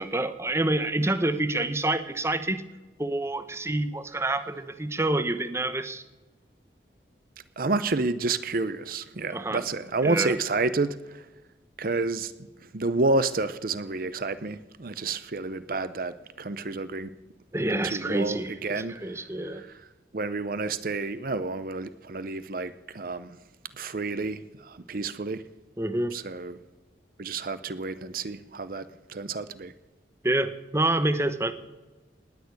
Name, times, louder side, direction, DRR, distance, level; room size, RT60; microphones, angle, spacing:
voice 1, 0.0-2.6 3.0-6.0 9.3-9.6 10.0-10.4 17.5-19.6 25.8-26.2 30.2-31.6, right 2 dB, 15° right, 10 dB, 0.9 m, -27 dB
voice 2, 7.6-11.3 11.8-12.3 12.6-17.1 17.8-19.2 19.5-19.7 20.1-23.4 23.7-25.4 26.1-26.6 27.2-29.7, right 3 dB, 50° right, 13 dB, 0.7 m, -30 dB
19.0 x 6.7 x 9.5 m, 1.2 s
head